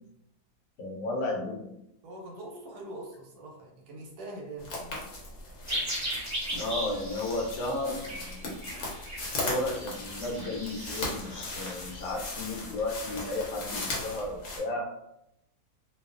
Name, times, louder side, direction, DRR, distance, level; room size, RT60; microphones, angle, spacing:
voice 1, 0.8-1.7 6.5-8.6 9.4-14.9, left 2 dB, 85° left, 0 dB, 1.3 m, -33 dB
voice 2, 2.0-5.1, right 1 dB, 70° right, 0 dB, 1.1 m, -43 dB
sound 1, 4.6-14.6, left 2 dB, 60° left, 1.0 m, -38 dB
sound 2, 5.7-12.1, right 1 dB, 15° right, 0.6 m, -38 dB
2.7 x 2.3 x 2.4 m, 0.82 s
omnidirectional pair, 1.8 m